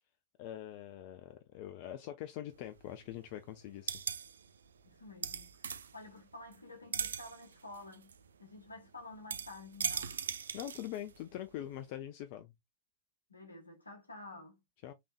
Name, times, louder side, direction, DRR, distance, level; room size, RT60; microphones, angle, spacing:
voice 1, 0.4-3.9 10.5-12.5 14.8-14.9, left 12 dB, 45° left, 0.4 m, -43 dB
sound 1, 2.5-3.3 3.6-6.6 6.9-11.4 11.7-11.8, right 7 dB, 70° right, 0.3 m, -40 dB
voice 2, 4.8-8.1 8.4-10.2 13.3-14.6, left 2 dB, 80° left, 1.3 m, -51 dB
3.4 x 3.3 x 2.5 m
figure-of-eight pair, 90°, 0 cm